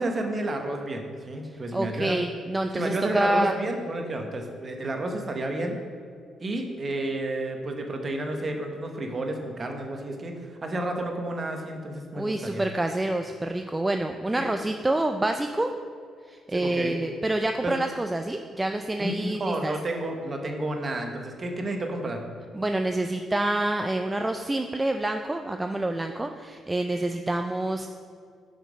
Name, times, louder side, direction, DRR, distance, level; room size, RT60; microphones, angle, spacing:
voice 1, 0.0-2.2 2.7-5.8 6.4-10.3 10.6-12.6 14.4-14.5 16.5-16.9 17.6-17.7 19.0-22.2, right 1 dB, 35° right, 3 dB, 1.0 m, -31 dB
voice 2, 1.7-3.5 12.1-15.7 16.3-19.7 22.5-27.9, right 1 dB, 15° right, 5 dB, 0.3 m, -27 dB
5.9 x 5.2 x 4.9 m, 2.2 s
cardioid pair, 90°, 0 cm